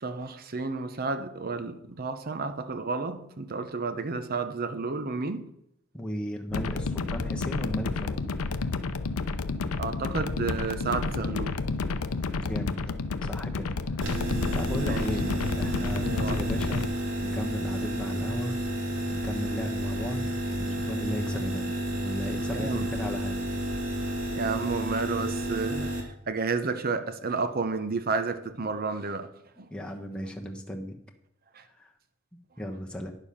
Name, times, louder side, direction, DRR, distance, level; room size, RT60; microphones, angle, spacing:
voice 1, 0.0-5.5 9.8-11.6 14.8-15.2 16.0-16.5 22.5-22.9 24.3-29.7 31.5-31.7, right 4 dB, 45° right, 0.8 m, -31 dB
voice 2, 5.9-8.2 12.4-12.8 13.2-13.7 14.5-16.8 17.2-18.6 19.1-21.7 22.0-23.5 29.7-31.0 31.7-31.9 32.6-33.1, equal, 5° left, 1.0 m, -35 dB
sound 1, 6.5-16.9, left 3 dB, 80° left, 0.6 m, -31 dB
sound 2, 14.0-26.0, right 1 dB, 60° right, 2.0 m, -31 dB
10.0 x 6.9 x 5.7 m
head